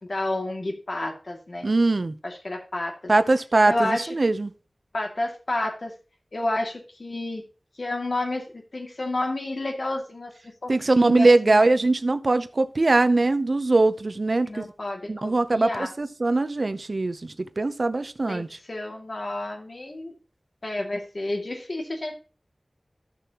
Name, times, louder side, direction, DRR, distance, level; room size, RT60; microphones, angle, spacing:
voice 1, 0.0-1.7 2.2-2.9 3.6-4.1 4.9-5.9 6.3-7.4 7.8-10.3 10.6-11.7 14.5-15.9 18.3-20.1 20.6-22.2, left 2 dB, 70° left, 2.4 m, -30 dB
voice 2, 1.6-2.2 3.1-4.5 10.7-14.7 15.1-18.5, right 2 dB, 65° right, 0.7 m, -21 dB
12.5 x 6.8 x 3.0 m
wide cardioid pair, 50°, 0 cm